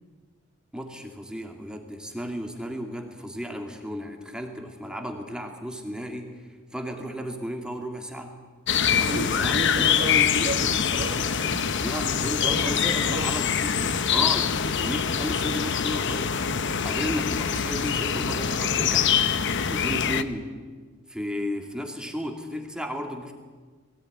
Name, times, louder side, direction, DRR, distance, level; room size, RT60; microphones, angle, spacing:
voice 1, 0.7-8.4 9.0-9.9 11.8-16.4 16.8-19.1 19.7-20.6 21.1-23.3, equal, 5° right, 3 dB, 2.5 m, -34 dB
sound 1, 8.7-20.2, left 7 dB, 60° left, 1.0 m, -24 dB
voice 2, 8.9-11.7 12.4-13.3, right 1 dB, 40° right, 2 dB, 1.7 m, -33 dB
21.5 x 17.5 x 9.6 m, 1.5 s
head